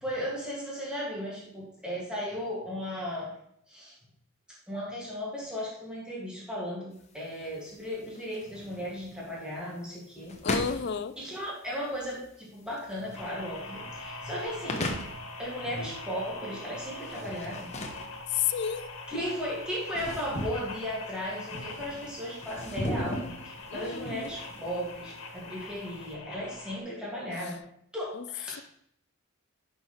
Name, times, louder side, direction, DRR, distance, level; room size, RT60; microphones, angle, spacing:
voice 1, 0.0-3.4 3.7-3.9 4.7-10.3 10.6-10.7 11.2-14.9 15.4-17.7 19.1-27.6 27.9-28.6, equal, 5° right, -6 dB, 2.1 m, -36 dB
sound 1, 6.9-26.1, left 1 dB, 30° left, 1.0 m, -39 dB
voice 2, 10.4-11.1 18.3-18.9 23.7-24.4 28.1-28.2, left 8 dB, 50° left, 12 dB, 0.4 m, -31 dB
sound 2, 13.1-26.8, left 3 dB, 90° left, 1.5 m, -43 dB
10.5 x 5.5 x 3.2 m, 0.69 s
head